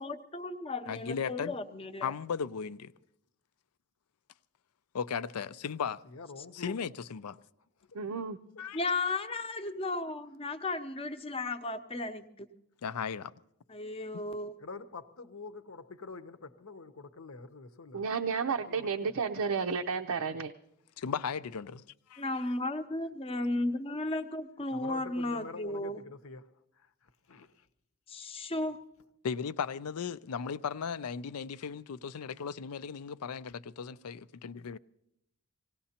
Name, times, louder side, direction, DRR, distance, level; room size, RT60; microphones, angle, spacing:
voice 1, 0.0-2.1 8.7-12.5 13.7-14.6 22.2-26.0 28.1-28.8, left 2 dB, 25° left, 0.7 m, -34 dB
voice 2, 0.9-1.5 2.0-2.9 5.0-6.0 6.5-7.4 8.6-8.8 12.8-13.3 21.0-21.8 22.1-22.3 29.2-34.8, left 6 dB, 85° left, 0.5 m, -36 dB
voice 3, 6.0-6.8 8.5-8.6 14.6-18.0 18.7-19.1 24.7-26.5 26.8-27.7, left 3 dB, 65° left, 0.8 m, -46 dB
voice 4, 7.9-8.4 17.9-20.5, right 5 dB, 80° right, 0.6 m, -32 dB
25.5 x 18.0 x 2.9 m
head